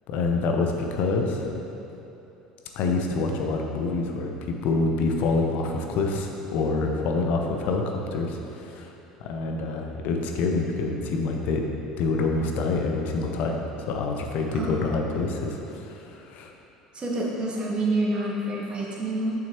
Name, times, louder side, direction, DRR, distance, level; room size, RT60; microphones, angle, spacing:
voice 1, 0.1-1.5 2.7-8.9 9.2-11.6 12.0-16.5, left 3 dB, 50° left, 2 dB, 0.7 m, -26 dB
voice 2, 16.9-19.3, right 2 dB, 30° right, -3 dB, 1.3 m, -27 dB
7.4 x 5.9 x 3.0 m, 2.9 s
figure-of-eight pair, 65°, 3 cm